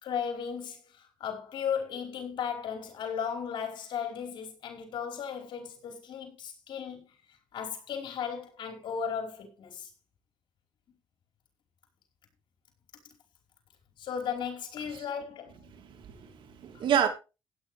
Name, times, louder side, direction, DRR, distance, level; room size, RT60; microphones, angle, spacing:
voice 1, 0.0-7.1 7.5-9.9 14.0-15.5, left 7 dB, 70° left, 4.8 m, -35 dB
voice 2, 15.7-17.1, right 9 dB, 75° right, 2.9 m, -29 dB
16.5 x 9.5 x 3.5 m
cardioid pair, 90°, 8 cm